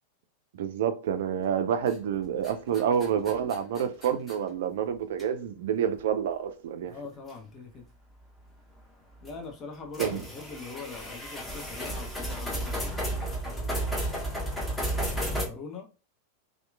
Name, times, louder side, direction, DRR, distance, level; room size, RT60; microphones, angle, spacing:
voice 1, 0.6-6.9 10.0-10.2, right 8 dB, 55° right, 0.4 m, -28 dB
sound 1, 1.9-2.2 2.4-4.4 5.2-5.3 5.9-6.0 7.3-7.4 9.2-9.3 9.9-15.5, right 1 dB, 10° left, 0.9 m, -33 dB
voice 2, 6.9-7.9 9.2-14.2 15.3-15.9, left 4 dB, 30° left, 0.6 m, -43 dB
2.8 x 2.4 x 2.3 m
figure-of-eight pair, 90°, 0 cm